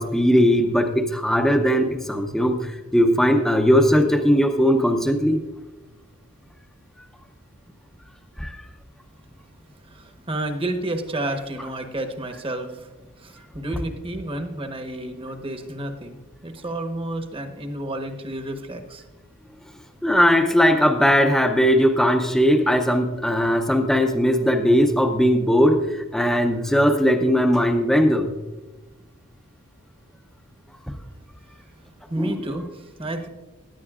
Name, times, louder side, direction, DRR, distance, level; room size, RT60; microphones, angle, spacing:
voice 1, 0.0-5.4 8.4-8.5 20.0-28.3 32.2-32.4, equal, ahead, 4 dB, 0.6 m, -19 dB
voice 2, 9.8-12.9 13.2-19.0 32.1-33.3, right 1 dB, 25° right, 6 dB, 1.1 m, -31 dB
16.5 x 10.5 x 2.4 m, 1.1 s
head